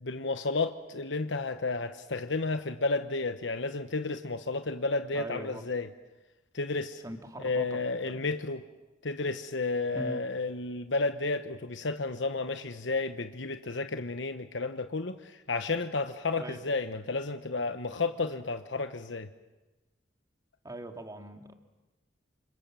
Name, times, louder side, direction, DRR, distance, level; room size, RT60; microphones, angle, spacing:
voice 1, 0.0-5.9 6.5-7.0 7.4-8.6 9.0-19.3, left 3 dB, 75° left, 8 dB, 1.1 m, -32 dB
voice 2, 5.1-5.6 7.0-7.8 8.0-8.2 9.9-10.2 16.4-16.6 20.6-21.5, right 1 dB, 20° right, 5 dB, 2.2 m, -41 dB
28.5 x 26.5 x 7.6 m, 1.1 s
head